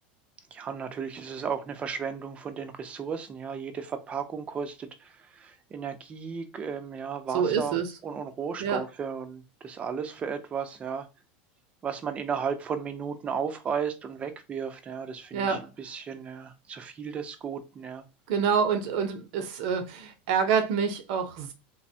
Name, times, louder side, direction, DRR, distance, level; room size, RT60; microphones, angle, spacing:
voice 1, 0.5-11.1 11.8-18.0, right 6 dB, 25° right, 0.5 m, -34 dB
voice 2, 7.3-7.9 8.6-8.8 15.3-15.6 18.3-21.5, right 6 dB, 65° right, 0.6 m, -27 dB
3.3 x 2.1 x 2.6 m
supercardioid pair, 140°, 5 cm